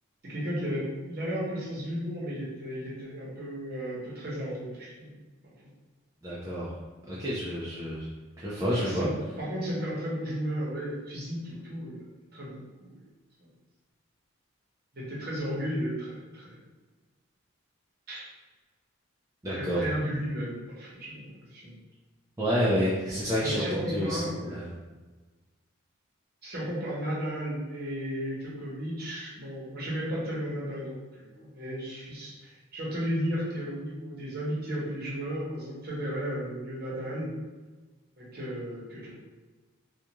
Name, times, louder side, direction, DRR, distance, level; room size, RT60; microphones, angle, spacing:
voice 1, 0.2-5.2 8.8-9.1 9.4-13.0 14.9-16.6 18.1-18.3 19.5-21.8 23.4-24.6 26.4-37.3 38.2-39.1, equal, 45° right, -6 dB, 0.8 m, -34 dB
voice 2, 6.2-6.7 7.1-8.1 8.4-9.1 19.4-19.8 22.4-24.7, equal, 15° right, -9 dB, 0.4 m, -29 dB
2.4 x 2.2 x 2.9 m, 1.3 s
head